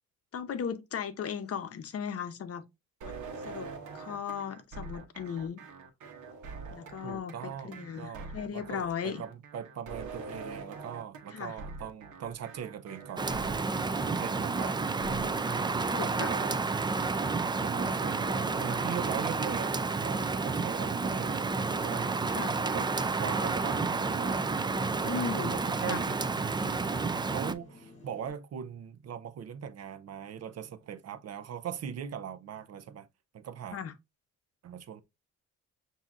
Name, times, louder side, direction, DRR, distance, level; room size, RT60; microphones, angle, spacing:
voice 1, 0.3-2.6 3.5-3.7 3.9-5.6 6.7-9.2 11.3-11.6 15.9-16.3 22.3-22.6 25.0-25.6 25.9-26.0 33.7-33.9, left 7 dB, 50° left, 0.8 m, -36 dB
sound 1, 3.0-16.6, right 4 dB, 75° right, 1.1 m, -45 dB
voice 2, 7.0-14.8 15.1-15.7 16.0-16.6 17.6-22.3 22.6-33.1 33.3-33.8 34.6-35.0, right 8 dB, 55° right, 0.7 m, -40 dB
Rain, 13.2-27.5, right 4 dB, 15° right, 0.4 m, -30 dB
sound 2, 23.3-28.3, left 2 dB, 20° left, 2.6 m, -52 dB
7.1 x 2.8 x 2.4 m
cardioid pair, 90°, 30 cm